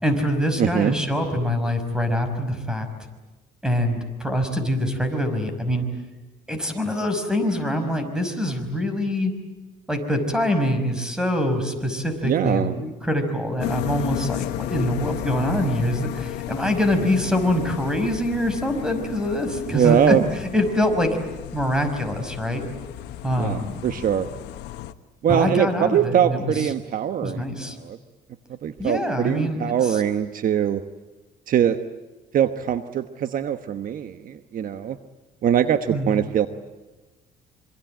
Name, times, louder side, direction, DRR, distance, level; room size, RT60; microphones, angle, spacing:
voice 1, 0.0-2.9 3.6-5.9 6.5-9.3 9.9-21.2 21.5-22.6 23.2-23.8 25.3-26.7 27.2-27.8 28.8-30.0 35.9-36.2, equal, 5° right, 8 dB, 5.5 m, -24 dB
voice 2, 0.6-1.0 12.2-12.7 19.7-20.2 23.4-24.3 25.2-27.4 27.7-28.0 28.6-30.8 31.5-31.8 32.3-35.0 35.4-36.5, right 9 dB, 55° right, 9 dB, 1.2 m, -22 dB
sound 1, 13.6-24.9, left 13 dB, 85° left, 1.2 m, -33 dB
26.5 x 24.5 x 9.0 m, 1.2 s
cardioid pair, 110°, 17 cm